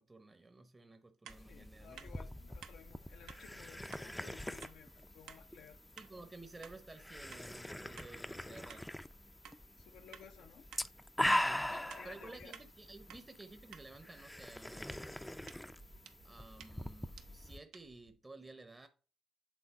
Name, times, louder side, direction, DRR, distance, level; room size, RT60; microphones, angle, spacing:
voice 1, 0.0-2.3 6.0-8.9 11.4-11.7 12.0-15.2 16.2-18.9, right 2 dB, 25° right, 0.8 m, -54 dB
sound 1, 1.3-17.6, left 1 dB, 10° left, 0.4 m, -42 dB
sound 2, 1.3-1.4 2.0-2.1 2.6-2.8 3.3-3.4 3.9-4.1 4.6-4.8 5.3-5.4 6.0-6.1 6.6-6.8 7.3-7.5 8.0-8.1 8.7-8.9 9.4-9.6 10.1-10.3 10.7-10.9 11.3-11.5 11.9-12.1 12.5-12.7 13.1-13.2 13.7-13.9 14.9-18.1, right 7 dB, 80° right, 0.7 m, -55 dB
voice 2, 1.4-5.8 8.4-8.8 9.8-10.7 11.7-12.5 13.1-13.2, left 7 dB, 75° left, 0.6 m, -57 dB
8.2 x 3.7 x 4.2 m
hypercardioid pair, 45°, 0 cm